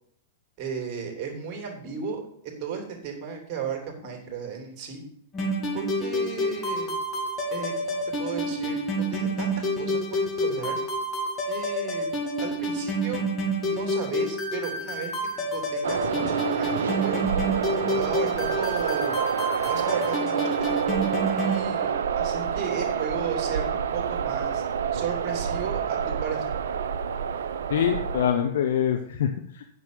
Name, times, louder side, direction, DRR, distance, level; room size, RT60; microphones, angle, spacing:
voice 1, 0.6-5.0 5.7-6.9 7.5-8.8 9.1-10.8 11.4-12.1 12.4-13.2 13.6-15.1 15.5-17.3 17.8-19.2 19.6-24.6 24.9-26.6, right 6 dB, 35° right, 2 dB, 3.0 m, -35 dB
sound 1, 5.3-21.6, equal, 25° left, 2.5 m, -28 dB
sound 2, 15.8-28.3, right 7 dB, 65° right, 0.6 m, -28 dB
voice 2, 27.7-29.6, left 9 dB, 60° left, 6 dB, 0.8 m, -25 dB
9.0 x 6.2 x 6.8 m, 0.69 s
figure-of-eight pair, 100°, 0 cm